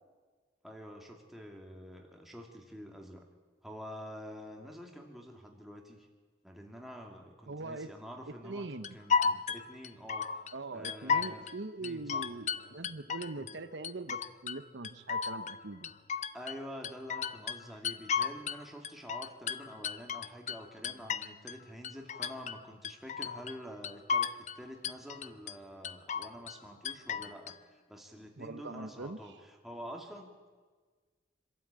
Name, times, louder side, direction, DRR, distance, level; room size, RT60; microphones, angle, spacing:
voice 1, 0.6-3.2 3.6-6.1 6.4-10.4 10.7-11.4 11.8-12.2 13.4-13.5 16.3-30.5, equal, ahead, 1 dB, 2.4 m, -47 dB
voice 2, 7.5-7.9 8.4-8.9 10.5-15.9 28.4-29.2, right 3 dB, 80° right, 10 dB, 1.0 m, -42 dB
sound 1, 8.8-10.5 10.8-11.5 11.8-13.6 13.8-14.6 14.8-16.6 16.8-18.6 18.8-21.6 21.8-22.6 22.8-23.6 23.8-24.6 24.8-25.5 25.8-26.6 26.8-27.5, left 6 dB, 40° left, 0.6 m, -34 dB
26.0 x 13.0 x 8.9 m, 1.5 s
head